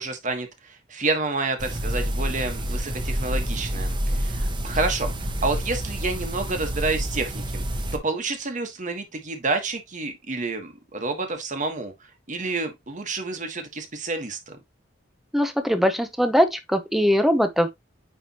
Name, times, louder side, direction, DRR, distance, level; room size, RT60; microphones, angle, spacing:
voice 1, 0.0-7.6 7.9-11.9 12.3-14.6, right 3 dB, 40° right, 1.4 m, -29 dB
sound 1, 1.6-8.0, equal, 25° right, 1.0 m, -28 dB
voice 2, 15.3-17.7, equal, ahead, 0.8 m, -21 dB
9.4 x 3.4 x 2.9 m
head